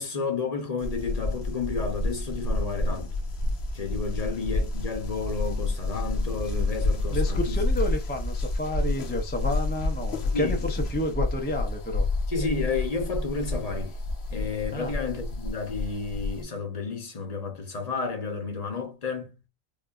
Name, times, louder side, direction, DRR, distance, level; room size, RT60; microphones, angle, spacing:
voice 1, 0.0-3.1 3.7-7.9 10.3-10.6 12.3-14.0 14.3-19.4, left 4 dB, 40° left, 0.8 m, -31 dB
sound 1, 0.8-16.4, left 2 dB, 85° left, 1.1 m, -29 dB
voice 2, 7.1-12.1 14.7-14.9, left 1 dB, 15° left, 0.4 m, -30 dB
4.7 x 2.3 x 2.4 m
omnidirectional pair, 1.0 m